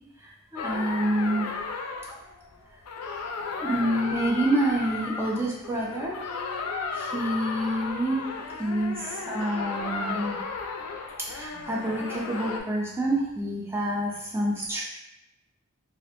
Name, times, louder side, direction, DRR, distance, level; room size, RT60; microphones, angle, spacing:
voice 1, 0.2-1.5 3.6-6.1 6.9-8.2 8.6-10.4 11.3-14.8, right 1 dB, 10° right, -4 dB, 0.3 m, -27 dB
sound 1, 0.6-12.6, left 4 dB, 85° left, 0.3 m, -34 dB
2.4 x 2.1 x 2.8 m, 0.85 s
head